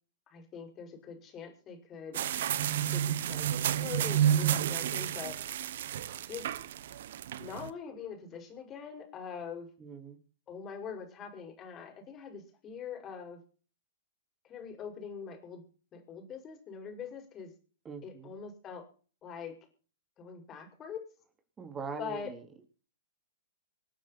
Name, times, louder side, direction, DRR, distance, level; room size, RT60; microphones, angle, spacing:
voice 1, 0.3-2.2 2.9-3.5 3.8-5.4 6.3-6.5 7.4-9.7 10.5-13.4 14.4-15.6 15.9-17.5 18.0-18.8 19.2-19.6 20.2-21.1 22.0-22.3, left 7 dB, 30° left, 6 dB, 5.6 m, -43 dB
sound 1, 2.1-7.7, right 10 dB, 65° right, 1.2 m, -30 dB
voice 2, 9.8-10.2 17.8-18.3 21.6-22.7, right 5 dB, 20° right, 7 dB, 3.3 m, -42 dB
27.0 x 9.3 x 4.2 m, 0.40 s
hypercardioid pair, 110°, 0 cm